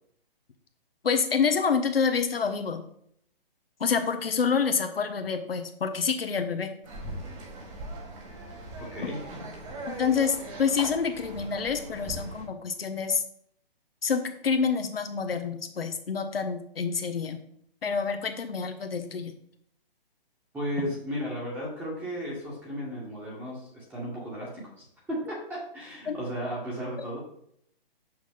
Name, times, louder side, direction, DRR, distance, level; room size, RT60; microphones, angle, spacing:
voice 1, 1.0-2.8 3.8-6.7 9.0-9.1 9.9-13.2 14.0-17.4 17.8-19.3 20.8-20.9 26.1-26.2 27.0-27.1, left 6 dB, 70° left, 7 dB, 1.2 m, -27 dB
sound 1, 6.8-12.5, right 2 dB, 30° right, 1.9 m, -40 dB
voice 2, 8.8-9.2 20.5-27.2, equal, 5° right, -5 dB, 1.7 m, -35 dB
6.2 x 6.0 x 3.7 m, 0.69 s
figure-of-eight pair, 135°, 30 cm